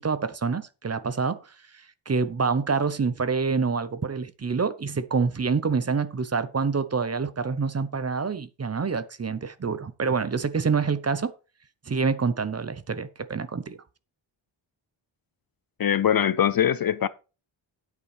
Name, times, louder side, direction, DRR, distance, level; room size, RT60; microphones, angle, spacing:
voice 1, 0.0-1.5 2.1-11.3 11.9-13.8, right 5 dB, 30° right, 0.7 m, -26 dB
voice 2, 15.8-17.1, left 9 dB, 50° left, 0.5 m, -22 dB
9.8 x 8.5 x 3.3 m
wide cardioid pair, 130°, 49 cm